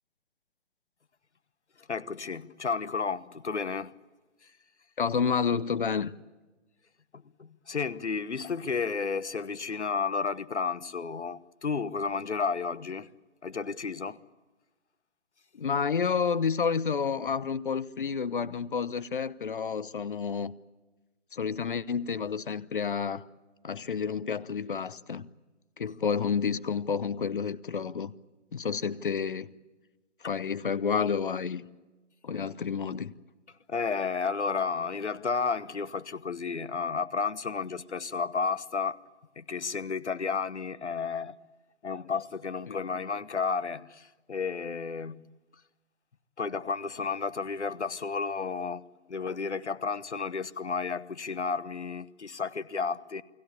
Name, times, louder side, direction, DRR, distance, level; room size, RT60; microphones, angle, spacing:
voice 1, 1.8-3.9 7.1-13.1 13.4-14.2 30.2-30.4 33.7-39.0 39.4-41.3 41.8-45.3 46.4-48.8 49.1-53.2, left 5 dB, 65° left, 1.2 m, -32 dB
voice 2, 5.0-6.1 15.5-20.5 21.3-23.3 23.6-25.3 25.8-28.1 28.5-29.5 30.3-31.6 32.2-33.1 42.7-42.8, left 6 dB, 45° left, 0.9 m, -30 dB
29.0 x 19.5 x 8.5 m
figure-of-eight pair, 145°, 37 cm